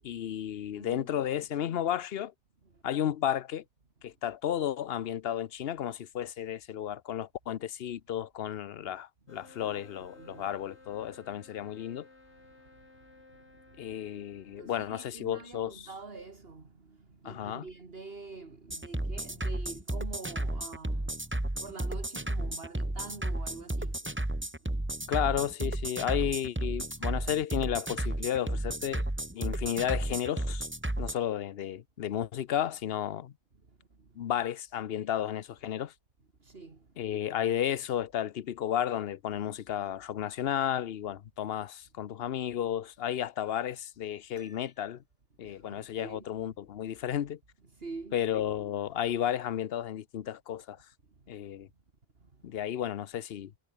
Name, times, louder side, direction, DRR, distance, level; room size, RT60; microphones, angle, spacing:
voice 1, 0.0-2.3 2.8-3.6 4.0-12.1 13.8-15.9 17.2-17.7 25.1-29.1 29.3-30.7 31.0-33.3 34.1-35.9 37.0-45.0 45.4-47.4 48.1-50.8 51.3-51.7 52.4-53.5, left 10 dB, 65° left, 0.9 m, -33 dB
voice 2, 0.7-1.2 2.7-2.8 9.6-10.6 13.3-13.4 13.8-13.9 14.4-24.1 24.6-25.1 34.0-34.2 36.4-36.9 45.4-46.3 47.7-48.2 52.2-52.6, right 4 dB, 60° right, 2.6 m, -47 dB
sound 1, 9.3-15.7, left 3 dB, 85° left, 3.7 m, -57 dB
sound 2, 18.7-31.1, right 1 dB, 10° right, 1.3 m, -33 dB
Piano, 44.3-45.2, left 1 dB, 30° left, 7.6 m, -61 dB
omnidirectional pair, 1.1 m